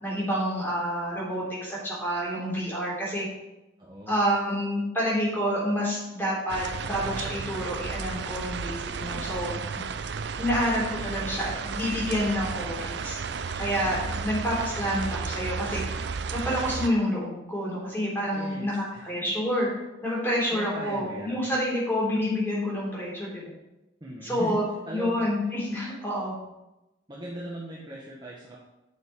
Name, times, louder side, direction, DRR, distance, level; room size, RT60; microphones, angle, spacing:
voice 1, 0.0-3.3 4.1-9.5 10.4-13.2 13.6-15.8 16.3-19.7 20.0-23.4 24.2-24.6 24.9-26.3, equal, 10° left, -6 dB, 3.6 m, -28 dB
voice 2, 3.8-4.2 9.1-9.6 13.8-14.3 18.3-19.1 20.5-21.5 24.0-24.6 24.9-25.3 27.1-28.6, right 1 dB, 20° right, -5 dB, 1.3 m, -39 dB
sound 1, 6.5-16.9, right 5 dB, 60° right, 0.5 m, -33 dB
9.4 x 6.6 x 4.7 m, 0.96 s
head